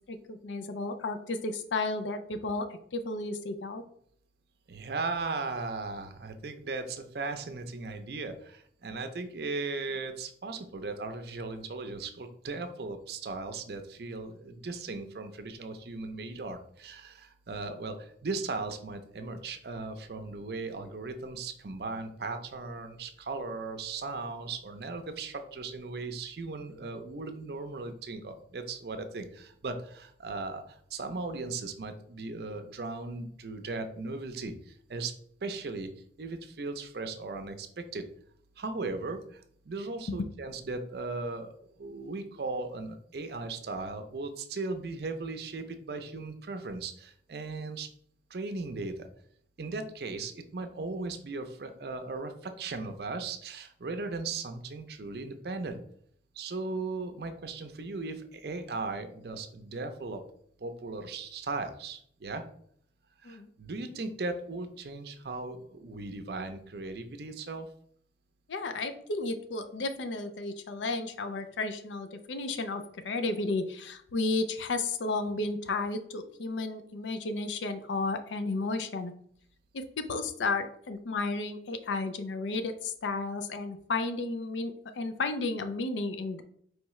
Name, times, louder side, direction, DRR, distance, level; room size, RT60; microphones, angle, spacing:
voice 1, 0.1-3.8 8.9-9.0 40.1-40.2 63.2-63.5 68.5-79.1 79.7-86.4, left 3 dB, 90° left, 9 dB, 0.5 m, -33 dB
voice 2, 4.7-30.6 30.9-35.1 35.4-35.9 36.2-38.0 38.6-41.5 41.8-47.9 48.3-49.1 49.6-55.8 56.4-60.2 60.6-62.4 63.2-67.7, right 3 dB, 60° right, 7 dB, 0.5 m, -37 dB
4.6 x 3.2 x 3.1 m, 0.64 s
head